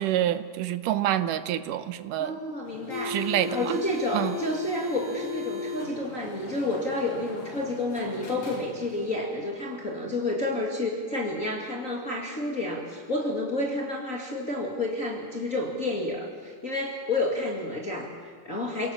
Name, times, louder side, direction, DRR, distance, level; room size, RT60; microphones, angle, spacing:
voice 1, 0.0-2.4 3.1-3.6 4.1-4.3, right 12 dB, 80° right, 11 dB, 2.5 m, -27 dB
voice 2, 2.2-18.9, left 2 dB, 25° left, -2 dB, 2.3 m, -30 dB
sound 1, 2.6-9.1, left 4 dB, 45° left, 5.3 m, -36 dB
29.0 x 18.0 x 7.2 m, 2.1 s
omnidirectional pair, 3.7 m